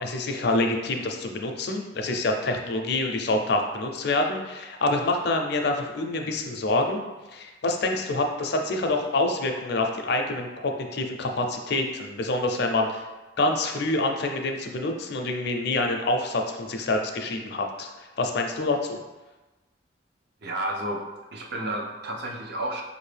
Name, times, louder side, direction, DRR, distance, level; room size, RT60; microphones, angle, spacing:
voice 1, 0.0-7.0 7.3-13.0 13.4-19.0, left 2 dB, 60° left, 3 dB, 0.5 m, -26 dB
voice 2, 20.4-21.0 21.3-22.8, right 1 dB, 60° right, 1 dB, 0.6 m, -31 dB
4.9 x 2.6 x 3.3 m, 1.1 s
head